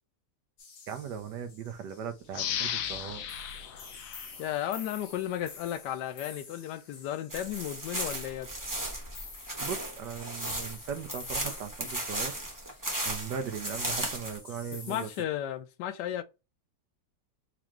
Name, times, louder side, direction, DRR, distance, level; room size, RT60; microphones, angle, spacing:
sound 1, 0.6-15.2, left 4 dB, 50° left, 1.3 m, -49 dB
voice 1, 0.9-3.3 9.6-12.4 13.1-15.1, right 7 dB, 85° right, 1.4 m, -38 dB
sound 2, 2.3-5.0 5.5-5.6, left 9 dB, 65° left, 0.9 m, -36 dB
voice 2, 4.4-8.5 14.9-16.2, left 11 dB, 90° left, 1.2 m, -34 dB
sound 3, 7.3-14.4, right 1 dB, 15° right, 0.9 m, -36 dB
4.7 x 2.5 x 3.0 m
omnidirectional pair, 1.8 m